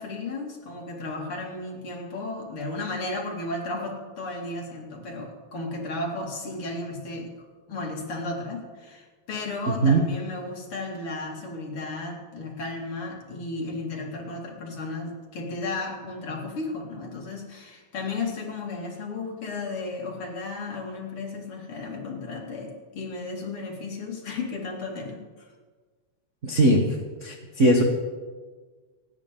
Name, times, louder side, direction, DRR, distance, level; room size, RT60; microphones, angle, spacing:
voice 1, 0.0-7.3 7.7-25.5, left 3 dB, 50° left, -1 dB, 3.0 m, -34 dB
voice 2, 26.4-26.8 27.2-27.8, right 1 dB, 55° right, 1 dB, 0.8 m, -19 dB
28.5 x 9.9 x 3.8 m, 1.5 s
omnidirectional pair, 3.4 m